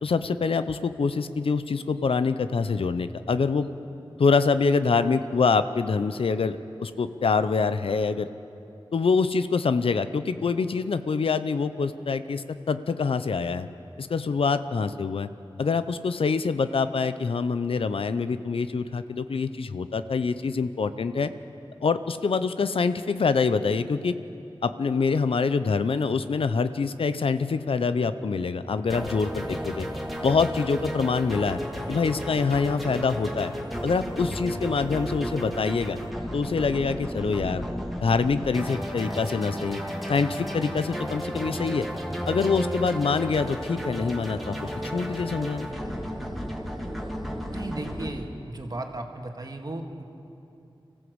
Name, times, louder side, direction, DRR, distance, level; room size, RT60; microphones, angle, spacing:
voice 1, 0.0-3.7 4.2-8.3 8.9-13.7 14.0-15.3 15.6-21.3 21.8-24.1 24.6-29.9 30.2-31.6 31.9-33.5 33.8-36.0 36.3-37.7 38.0-39.8 40.1-41.9 42.3-45.7, left 4 dB, 85° left, 12 dB, 0.7 m, -25 dB
sound 1, 28.9-48.1, equal, ahead, 2.5 m, -33 dB
voice 2, 47.5-50.0, right 2 dB, 45° right, 3 dB, 2.1 m, -35 dB
25.0 x 15.0 x 8.0 m, 2.8 s
wide cardioid pair, 75°, 9 cm